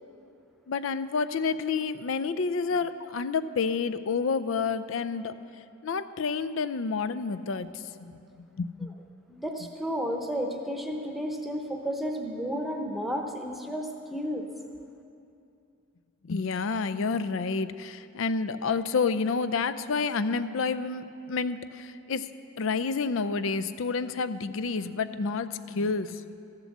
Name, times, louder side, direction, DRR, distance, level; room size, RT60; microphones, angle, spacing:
voice 1, 0.7-5.3 5.8-8.9 16.2-22.3 22.6-26.4, left 4 dB, 70° left, 13 dB, 0.4 m, -29 dB
voice 2, 9.3-14.4, equal, ahead, 2 dB, 0.8 m, -32 dB
14.0 x 7.6 x 7.2 m, 2.6 s
head